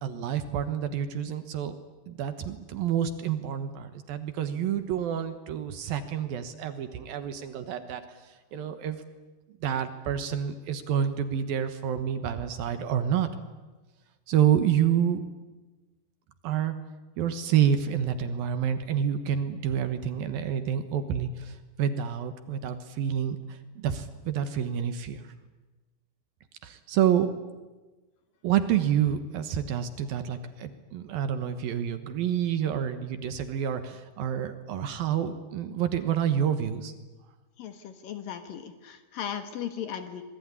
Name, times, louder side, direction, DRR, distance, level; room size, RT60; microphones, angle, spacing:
voice 1, 0.0-1.7 2.1-8.0 8.5-9.0 9.6-13.3 14.3-15.3 16.4-16.8 17.2-23.4 23.8-25.2 26.6-27.3 28.4-36.9, right 9 dB, 65° right, 10 dB, 2.8 m, -28 dB
voice 2, 37.6-40.2, left 9 dB, 60° left, 8 dB, 2.9 m, -37 dB
26.0 x 22.0 x 9.8 m, 1.2 s
omnidirectional pair, 4.9 m